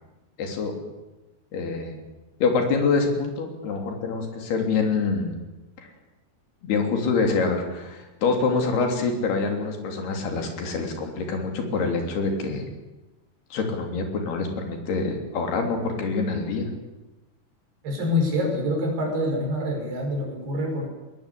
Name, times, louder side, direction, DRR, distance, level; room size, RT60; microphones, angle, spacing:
voice 1, 0.4-0.8 1.5-2.0 2.4-5.3 5.8-5.9 6.6-12.7 13.5-16.7, left 4 dB, 70° left, 3 dB, 5.2 m, -25 dB
voice 2, 17.8-20.9, left 1 dB, 70° right, 1 dB, 8.1 m, -26 dB
21.5 x 20.5 x 8.6 m, 1.1 s
omnidirectional pair, 4.8 m